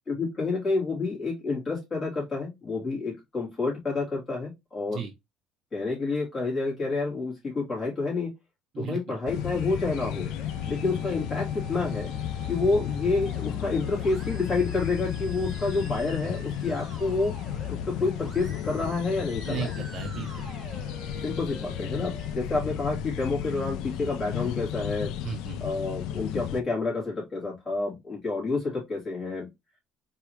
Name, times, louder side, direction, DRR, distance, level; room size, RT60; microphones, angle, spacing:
voice 1, 0.1-5.0 5.7-8.3 8.8-10.3 10.7-12.1 12.5-17.4 17.7-19.7 21.2-25.1 25.6-29.5, left 3 dB, 25° left, 3.0 m, -29 dB
voice 2, 8.7-9.2 19.5-20.5 25.2-25.6, right 7 dB, 40° right, 1.0 m, -35 dB
sound 1, 9.3-26.6, left 10 dB, 75° left, 0.4 m, -33 dB
Musical instrument, 9.3-22.3, right 3 dB, 15° right, 1.2 m, -48 dB
4.6 x 3.2 x 3.0 m
cardioid pair, 145°, 0 cm